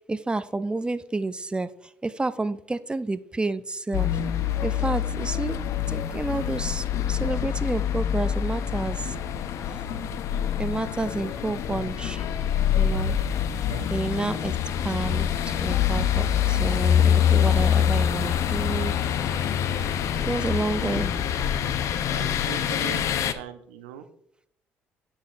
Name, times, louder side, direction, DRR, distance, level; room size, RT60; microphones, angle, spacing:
voice 1, 0.1-4.1 4.6-5.6 5.9-9.2 10.6-12.3 12.7-13.2 13.9-14.5 14.8-18.9 20.2-21.1, right 3 dB, 15° right, 14 dB, 0.5 m, -30 dB
sound 1, 3.9-23.3, left 9 dB, 65° left, 0.5 m, -25 dB
voice 2, 22.1-24.0, right 10 dB, 90° right, 9 dB, 0.6 m, -41 dB
9.6 x 5.6 x 2.6 m, 0.69 s
hypercardioid pair, 55°, 6 cm